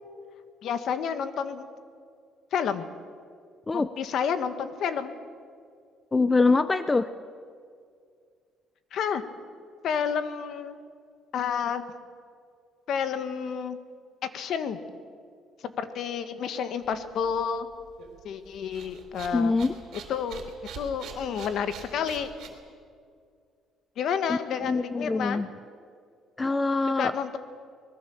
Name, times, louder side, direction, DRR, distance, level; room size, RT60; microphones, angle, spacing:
voice 1, 0.6-1.7 2.5-2.8 3.7-5.1 8.9-9.2 9.8-10.8 11.3-11.8 12.9-13.8 14.3-14.8 15.6-17.7 18.2-19.6 20.1-20.4 20.7-22.3 24.0-25.4 27.0-27.4, left 7 dB, 55° left, 10 dB, 1.5 m, -30 dB
voice 2, 6.1-7.1 19.3-19.7 24.3-24.4 24.7-25.5 26.4-27.1, left 3 dB, 15° left, 13 dB, 0.5 m, -24 dB
sound 1, 16.8-22.5, right 7 dB, 60° right, 4.1 m, -45 dB
25.0 x 20.5 x 7.1 m, 2.2 s
cardioid pair, 155°, 0 cm